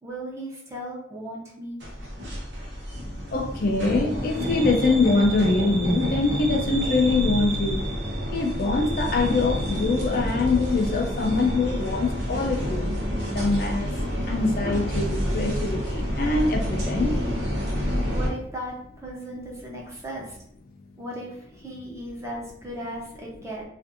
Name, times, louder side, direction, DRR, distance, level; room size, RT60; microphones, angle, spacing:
voice 1, 0.0-1.8 17.8-18.8 19.0-20.4 21.0-23.6, right 1 dB, 15° right, -3 dB, 0.7 m, -36 dB
sound 1, 1.8-18.3, equal, 85° right, 0.8 m, -29 dB
voice 2, 3.2-7.8 8.3-12.9 13.3-13.9 14.3-17.2, left 3 dB, 55° left, 2 dB, 0.4 m, -24 dB
2.5 x 2.5 x 2.5 m, 0.72 s
head